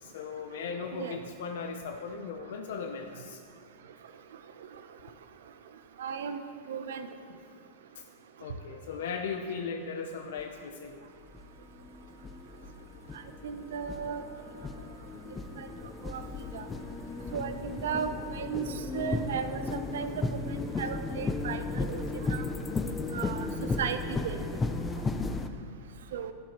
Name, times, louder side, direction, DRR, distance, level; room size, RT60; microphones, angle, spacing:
voice 1, 0.0-3.4 8.0-8.1 8.4-11.0, left 5 dB, 70° left, 5 dB, 0.6 m, -37 dB
voice 2, 6.0-6.4 6.7-7.1 13.4-14.2 15.6-15.7 16.1-16.2 16.5-16.6 17.3-18.6 18.9-22.0 22.3-22.4 23.1-23.5 23.8-24.5 26.1-26.3, right 7 dB, 90° right, 9 dB, 0.7 m, -35 dB
sound 1, 10.4-10.5 11.2-25.5, left 3 dB, 10° left, 0.3 m, -35 dB
11.5 x 10.5 x 3.0 m, 2.2 s
supercardioid pair, 175°, 0 cm